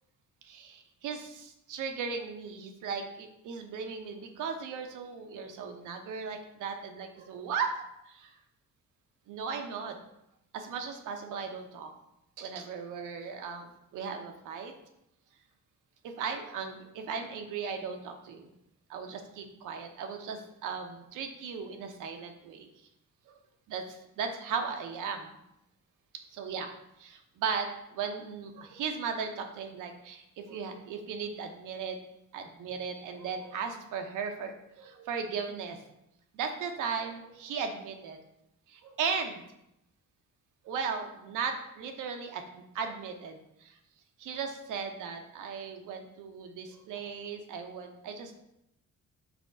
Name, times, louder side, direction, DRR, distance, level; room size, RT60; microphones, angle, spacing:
voice 1, 0.4-7.7 8.1-8.4 9.3-10.0 10.5-11.9 12.4-14.7 16.0-18.5 18.9-22.7 23.3-23.4 23.7-25.3 26.3-26.7 27.0-32.0 32.3-35.8 36.3-38.2 38.8-39.4 40.6-43.8 44.2-48.4, right 6 dB, 85° right, 5 dB, 1.0 m, -37 dB
5.9 x 3.6 x 5.4 m, 0.83 s
cardioid pair, 90°, 30 cm